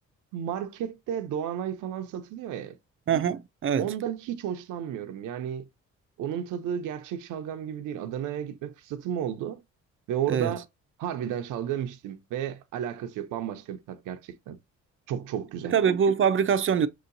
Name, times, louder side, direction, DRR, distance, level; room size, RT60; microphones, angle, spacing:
voice 1, 0.3-2.7 3.8-5.7 6.2-9.6 10.1-10.6 11.0-14.6 15.1-15.7, right 9 dB, 90° right, 0.7 m, -33 dB
voice 2, 3.1-3.9 10.3-10.5 15.7-16.9, right 7 dB, 45° right, 0.6 m, -23 dB
6.1 x 2.9 x 2.6 m
cardioid pair, 90°, 30 cm